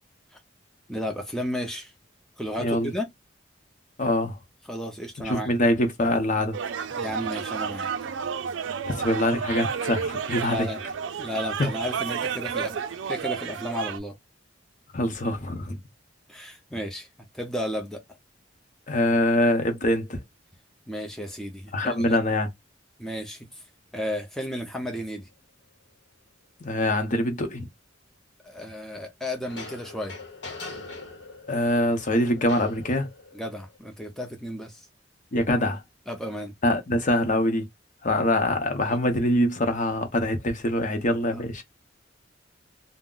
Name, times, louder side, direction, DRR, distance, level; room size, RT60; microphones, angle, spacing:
voice 1, 0.9-1.9 2.4-3.1 4.7-5.5 7.0-7.9 10.4-10.8 11.2-12.8 13.1-14.2 16.3-17.1 17.3-18.0 20.9-22.2 23.0-23.6 23.9-25.3 28.4-30.2 33.3-34.8 36.1-36.5 38.9-39.0 41.3-41.4, equal, 5° left, 0.5 m, -33 dB
voice 2, 2.6-2.9 4.0-4.4 5.2-6.6 8.8-10.7 11.6-11.7 14.9-15.8 18.9-20.2 21.7-22.5 26.6-27.7 31.5-33.1 35.3-35.8 36.6-37.7 38.0-41.6, left 1 dB, 45° left, 0.7 m, -24 dB
sound 1, 6.5-14.0, right 6 dB, 85° right, 0.4 m, -31 dB
sound 2, 29.5-33.8, left 3 dB, 70° left, 0.9 m, -42 dB
2.4 x 2.1 x 3.6 m
head